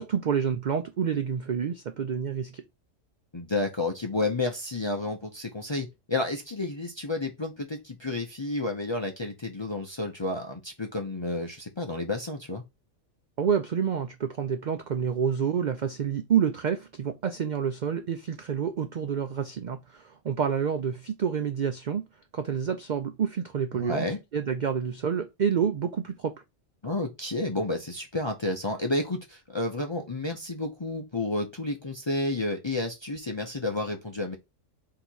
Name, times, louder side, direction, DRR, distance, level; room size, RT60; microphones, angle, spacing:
voice 1, 0.0-2.6 13.4-22.0 22.3-24.1 24.3-26.4, right 7 dB, 75° right, 0.4 m, -28 dB
voice 2, 3.3-12.6 23.7-24.2 26.8-34.4, left 2 dB, 35° left, 0.5 m, -31 dB
4.0 x 2.9 x 4.4 m
omnidirectional pair, 1.4 m